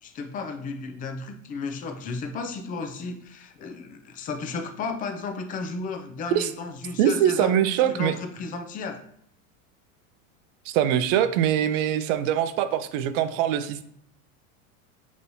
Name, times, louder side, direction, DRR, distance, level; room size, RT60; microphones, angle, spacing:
voice 1, 0.0-9.0, left 4 dB, 20° left, 6 dB, 0.3 m, -34 dB
voice 2, 7.0-8.1 10.7-13.8, right 10 dB, 65° right, 12 dB, 0.5 m, -23 dB
5.2 x 3.1 x 2.6 m, 0.68 s
supercardioid pair, 110°, 43 cm